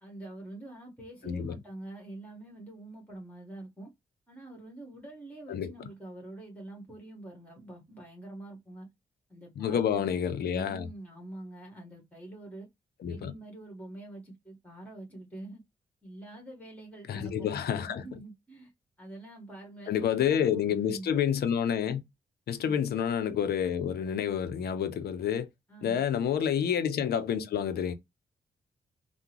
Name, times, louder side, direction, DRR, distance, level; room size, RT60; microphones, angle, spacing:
voice 1, 0.0-3.9 4.3-8.9 9.3-10.0 10.4-12.7 13.1-15.6 16.0-17.5 17.9-18.7 19.0-21.1 22.5-22.7 25.7-26.0, right 2 dB, 10° left, 1.6 m, -45 dB
voice 2, 1.2-1.6 5.5-5.7 9.6-10.9 13.0-13.3 17.1-18.2 19.9-22.0 22.5-25.5 25.8-27.9, left 8 dB, 65° left, 0.6 m, -29 dB
3.5 x 2.0 x 2.9 m
hypercardioid pair, 40°, 18 cm